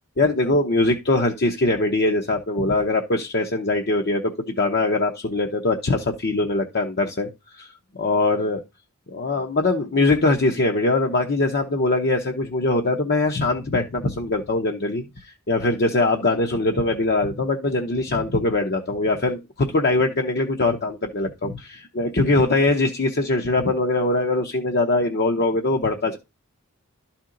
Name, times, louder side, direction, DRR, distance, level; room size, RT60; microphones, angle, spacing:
voice 1, 0.2-7.3 7.6-7.7 8.0-8.6 9.1-26.2, left 2 dB, 50° left, 0.8 m, -22 dB
12.0 x 4.3 x 3.8 m
head